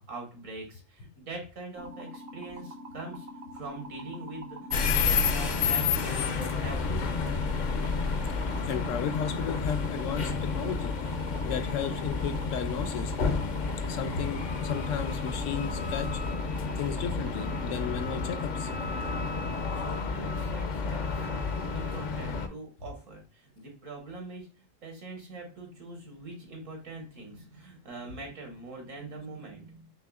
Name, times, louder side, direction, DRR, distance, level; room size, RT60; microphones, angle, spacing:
voice 1, 0.0-3.3 3.5-7.6 19.7-29.9, right 2 dB, 75° right, 1 dB, 1.9 m, -43 dB
sound 1, 1.8-19.6, equal, 60° right, 0.8 m, -44 dB
sound 2, 4.7-22.5, left 5 dB, 55° left, 0.5 m, -30 dB
voice 2, 8.4-10.9 11.4-13.1 13.8-16.2 16.8-18.7, left 7 dB, 80° left, 10 dB, 1.0 m, -34 dB
5.5 x 3.1 x 2.3 m, 0.36 s
omnidirectional pair, 1.3 m